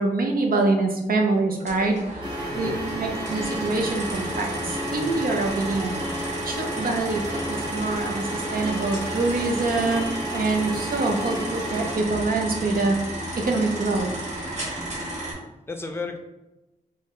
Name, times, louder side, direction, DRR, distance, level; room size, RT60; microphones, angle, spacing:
voice 1, 0.0-2.0 2.5-6.0 6.4-14.1, right 3 dB, 85° right, 2 dB, 0.6 m, -25 dB
voice 2, 1.6-2.8 5.0-5.2 15.1-16.2, left 3 dB, 15° left, 4 dB, 0.5 m, -37 dB
sound 1, 1.7-15.3, right 1 dB, 50° right, 1.5 m, -33 dB
sound 2, 2.2-11.9, equal, 30° right, 1.0 m, -33 dB
3.8 x 2.7 x 3.1 m, 1.0 s
wide cardioid pair, 115°, 15 cm